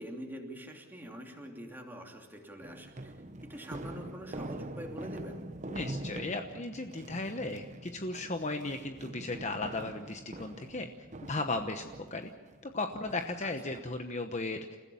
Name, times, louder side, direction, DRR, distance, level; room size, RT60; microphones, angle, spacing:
voice 1, 0.0-5.4 13.4-13.7, equal, 10° right, 1 dB, 2.8 m, -45 dB
sound 1, 2.6-13.8, right 1 dB, 35° right, 1.1 m, -44 dB
voice 2, 5.7-10.9 11.2-12.3 12.6-14.8, left 2 dB, 35° left, 6 dB, 1.0 m, -36 dB
29.0 x 15.5 x 7.1 m, 1.5 s
head